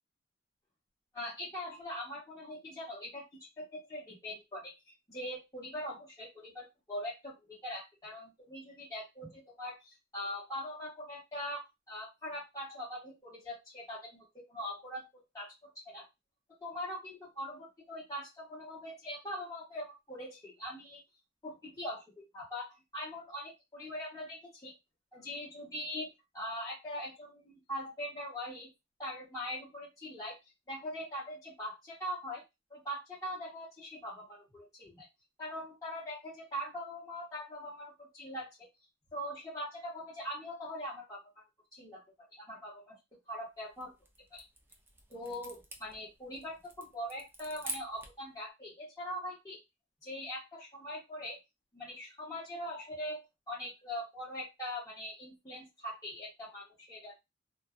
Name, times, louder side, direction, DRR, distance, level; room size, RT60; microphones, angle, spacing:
voice 1, 1.1-3.2 3.6-16.1 16.6-21.0 21.4-24.7 25.1-28.7 29.0-30.4 30.7-32.4 32.7-35.0 35.4-38.5 39.1-41.4 41.7-42.9 43.3-43.9 44.3-44.4 45.1-49.6 50.0-51.4 51.7-57.2, equal, 20° left, -9 dB, 1.0 m, -42 dB
sound 1, 43.6-48.3, right 2 dB, 10° right, 0.4 m, -47 dB
2.6 x 2.2 x 2.4 m, 0.22 s
head